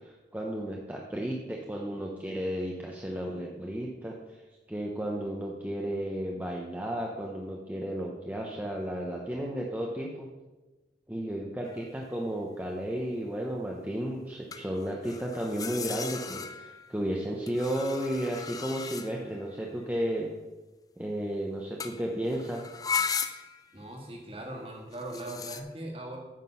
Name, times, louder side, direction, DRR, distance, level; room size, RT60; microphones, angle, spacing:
voice 1, 0.0-4.4 4.7-10.3 11.1-20.3 21.0-22.6, right 1 dB, 10° right, -1 dB, 0.8 m, -33 dB
sound 1, 11.6-11.9 14.5-16.9 17.5-19.4 21.8-22.0 22.3-23.7 24.9-25.6, left 6 dB, 20° left, 0.4 m, -36 dB
voice 2, 23.7-26.2, right 1 dB, 30° right, 1 dB, 1.9 m, -40 dB
9.3 x 5.9 x 5.7 m, 1.1 s
head